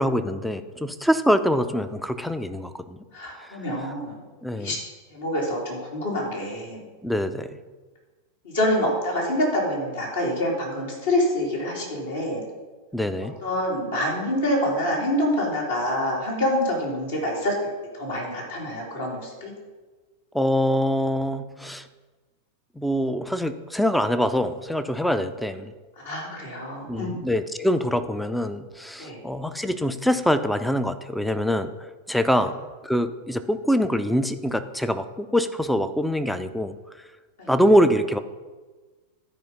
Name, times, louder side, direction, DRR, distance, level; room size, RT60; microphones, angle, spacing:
voice 1, 0.0-3.0 4.4-4.7 7.0-7.5 12.9-13.3 20.3-21.9 22.8-25.7 26.9-31.7 32.1-32.5 32.8-36.7 37.5-38.2, equal, ahead, 11 dB, 0.6 m, -24 dB
voice 2, 3.1-4.2 4.6-4.8 5.1-6.8 8.4-12.4 13.4-17.5 17.9-19.5 26.0-27.1 29.0-29.2 37.4-37.5, left 1 dB, 65° left, -3 dB, 3.4 m, -26 dB
12.0 x 5.0 x 5.6 m, 1.3 s
figure-of-eight pair, 90°, 0 cm